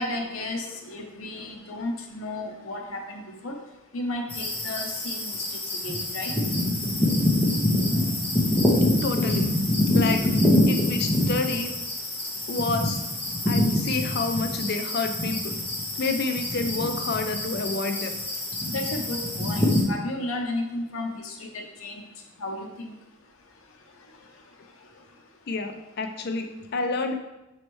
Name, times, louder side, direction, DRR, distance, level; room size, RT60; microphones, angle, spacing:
voice 1, 0.0-3.6 3.9-6.3 18.7-22.0 22.4-22.9, left 1 dB, 80° left, 2 dB, 0.7 m, -33 dB
sound 1, 4.3-19.8, left 1 dB, 10° left, 0.8 m, -25 dB
voice 2, 9.0-9.5 9.9-10.2 10.7-11.7 12.5-13.0 13.4-15.6 16.0-18.2 25.5-27.1, left 3 dB, 50° left, 6 dB, 0.4 m, -29 dB
5.2 x 3.2 x 3.1 m, 0.98 s
head